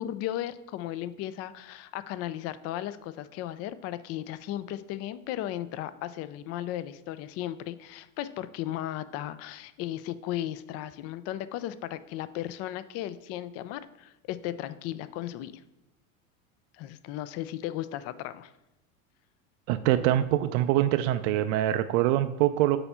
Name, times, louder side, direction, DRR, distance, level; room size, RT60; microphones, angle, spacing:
voice 1, 0.0-15.6 16.7-18.5, left 13 dB, 35° left, 15 dB, 0.4 m, -35 dB
voice 2, 19.7-22.8, right 13 dB, 60° right, 9 dB, 0.5 m, -24 dB
6.8 x 4.3 x 5.6 m, 0.92 s
hypercardioid pair, 100°, 43 cm